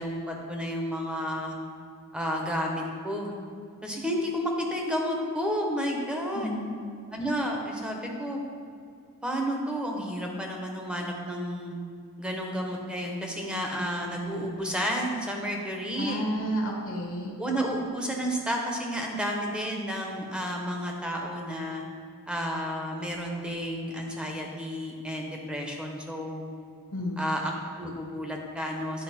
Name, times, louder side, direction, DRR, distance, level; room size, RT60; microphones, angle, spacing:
voice 1, 0.0-1.5 2.1-3.3 3.8-6.5 7.1-8.4 9.2-11.7 12.2-16.2 17.4-21.8 22.3-26.4 27.2-29.0, equal, 5° right, 0 dB, 0.9 m, -31 dB
voice 2, 6.3-6.7 15.9-17.3 26.9-27.3, equal, 60° left, 0 dB, 1.1 m, -31 dB
10.0 x 5.3 x 4.2 m, 2.3 s
head